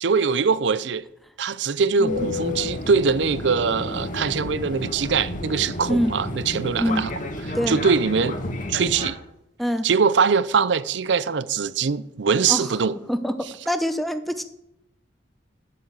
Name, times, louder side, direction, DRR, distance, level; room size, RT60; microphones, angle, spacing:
voice 1, 0.0-1.0 1.4-7.1 7.7-8.4 8.7-9.2 9.8-13.0, right 5 dB, 65° right, 0.5 m, -22 dB
Fixed-wing aircraft airplane, 2.1-9.1, left 2 dB, 45° left, 1.5 m, -31 dB
voice 2, 13.7-14.4, equal, ahead, 0.7 m, -24 dB
9.8 x 7.9 x 7.4 m
head